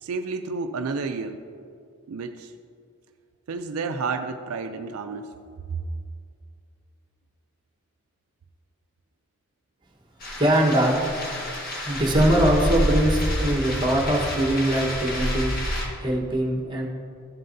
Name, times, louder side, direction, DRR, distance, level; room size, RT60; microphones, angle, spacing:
voice 1, 0.0-1.4 2.1-2.5 3.5-5.3 5.7-5.8, right 4 dB, 80° right, 7 dB, 0.4 m, -30 dB
sound 1, 10.2-15.9, equal, 40° left, 1.5 m, -28 dB
voice 2, 10.4-11.0 11.8-15.5 16.0-16.9, right 1 dB, 20° right, -1 dB, 1.1 m, -22 dB
13.0 x 7.7 x 2.6 m, 2.3 s
head